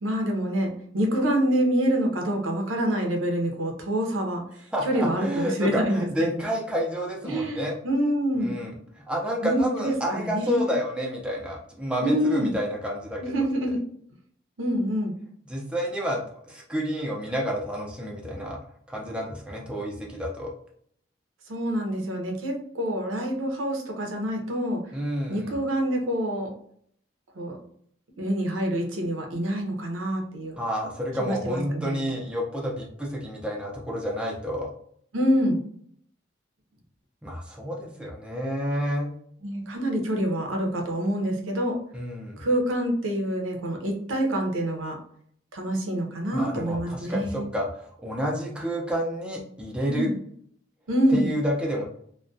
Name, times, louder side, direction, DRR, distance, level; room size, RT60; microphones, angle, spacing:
voice 1, 0.0-4.4 4.8-6.5 7.2-8.5 9.4-10.7 12.0-12.5 13.2-13.8 14.6-15.1 21.5-24.8 25.3-26.5 27.4-27.6 28.2-30.6 31.2-32.1 35.1-35.6 39.4-41.8 42.4-45.0 45.5-47.4 49.9-50.1 50.9-51.3, equal, 85° right, 2 dB, 0.6 m, -26 dB
voice 2, 4.7-7.7 8.4-13.3 15.5-18.6 18.9-20.5 24.9-25.5 30.6-34.7 37.2-39.1 41.9-42.4 46.3-50.1 51.1-51.8, equal, 5° right, -2 dB, 0.4 m, -29 dB
2.2 x 2.1 x 2.5 m, 0.63 s
head